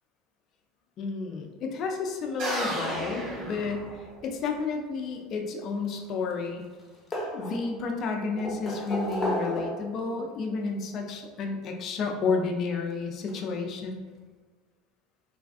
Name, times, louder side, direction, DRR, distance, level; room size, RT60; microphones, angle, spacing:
voice 1, 1.0-6.6 7.3-14.0, left 4 dB, 50° left, 2 dB, 0.5 m, -31 dB
sound 1, 2.4-4.3, equal, 65° right, 1.4 m, -33 dB
sound 2, 5.8-6.5 6.7-7.9 8.4-10.0 11.2-11.3 12.9-13.0 13.3-13.4, left 1 dB, 20° left, 0.9 m, -33 dB
3.2 x 2.3 x 2.4 m, 1.4 s
hypercardioid pair, 90°, 0 cm